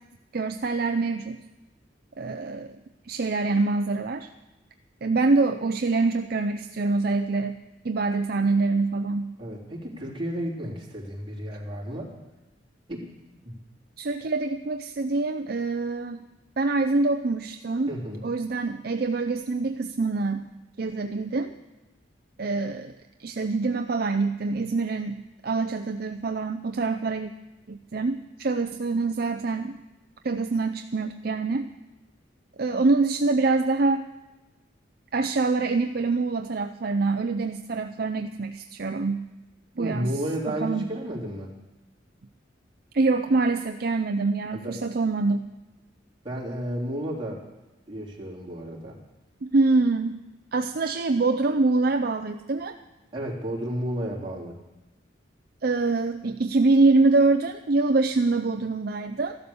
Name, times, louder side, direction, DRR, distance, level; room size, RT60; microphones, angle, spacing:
voice 1, 0.3-1.4 2.2-2.7 3.0-4.3 5.0-7.6 7.8-9.3 14.0-16.2 16.6-17.9 18.2-20.4 20.8-21.5 22.4-22.9 23.2-27.3 27.7-29.8 30.2-31.7 32.6-34.0 35.1-39.2 39.8-40.1 40.5-40.9 42.9-45.4 49.4-50.2 50.5-52.7 55.6-59.4, right 3 dB, 55° right, 7 dB, 0.6 m, -25 dB
voice 2, 9.4-12.1 12.9-13.0 13.4-13.5 17.9-18.2 39.8-41.5 44.5-44.8 46.2-47.4 47.9-49.0 53.1-54.6, equal, 25° right, -3 dB, 3.4 m, -32 dB
14.5 x 12.0 x 7.0 m, 1.1 s
head